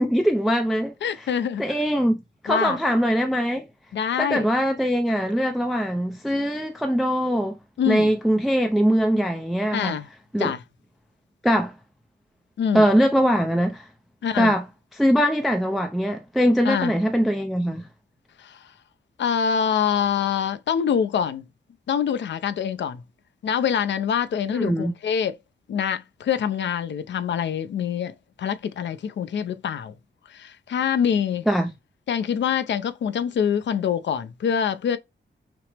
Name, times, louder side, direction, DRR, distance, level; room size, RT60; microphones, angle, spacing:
voice 1, 0.0-0.9 1.6-3.7 4.2-7.6 7.9-10.0 10.3-10.5 11.4-11.7 12.7-13.9 14.3-14.6 15.0-17.9 24.5-24.9 31.5-31.7, equal, ahead, 0.4 m, -22 dB
voice 2, 1.0-1.6 2.5-2.8 3.9-4.5 7.8-8.1 9.7-10.1 10.4-10.6 12.6-12.9 14.2-14.5 16.6-16.9 18.4-18.7 19.2-21.5 21.9-23.0 23.4-25.4 25.7-29.9 30.3-31.5 32.1-35.0, left 8 dB, 70° left, 0.4 m, -25 dB
5.9 x 2.0 x 3.2 m
wide cardioid pair, 175°, 20 cm